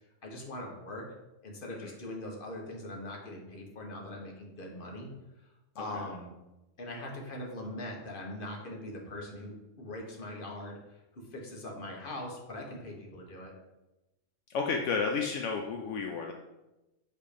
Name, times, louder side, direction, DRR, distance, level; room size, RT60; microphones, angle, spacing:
voice 1, 0.2-1.0 1.4-5.1 5.8-6.3 6.8-10.8 11.1-13.5, left 1 dB, 45° left, 0 dB, 1.4 m, -41 dB
voice 2, 14.5-16.3, left 5 dB, 75° left, 1 dB, 1.0 m, -31 dB
7.5 x 3.4 x 5.0 m, 0.99 s
omnidirectional pair, 1.3 m